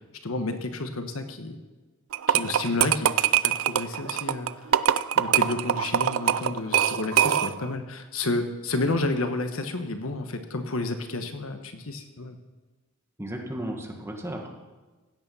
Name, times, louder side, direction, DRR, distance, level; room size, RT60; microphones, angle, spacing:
voice 1, 0.2-1.6 2.3-4.5 5.1-12.4, left 2 dB, 80° left, 7 dB, 1.2 m, -30 dB
sound 1, 2.1-7.7, right 10 dB, 70° right, 0.4 m, -23 dB
voice 2, 13.2-14.5, right 1 dB, 15° right, 1 dB, 1.8 m, -34 dB
16.5 x 8.5 x 5.6 m, 1.3 s
head